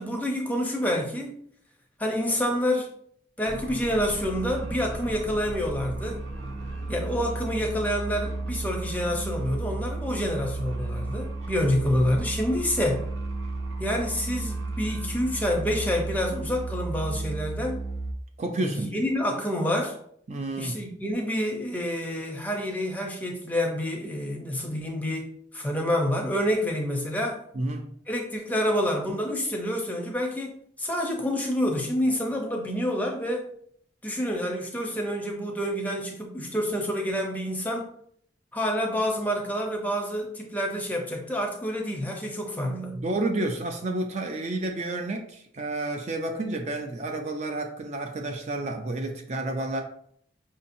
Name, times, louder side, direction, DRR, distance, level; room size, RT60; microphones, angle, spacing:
voice 1, 0.0-1.4 2.0-2.9 3.4-6.2 6.9-13.1 13.8-17.8 18.6-20.0 20.6-27.4 28.1-33.4 34.0-37.9 38.5-43.0, equal, 10° left, 0.6 m, -28 dB
sound 1, 3.4-18.1, right 2 dB, 85° right, 0.7 m, -33 dB
voice 2, 18.4-18.9 20.3-20.8 27.5-27.9 42.9-49.8, right 2 dB, 40° right, 0.4 m, -30 dB
5.3 x 2.7 x 2.6 m
head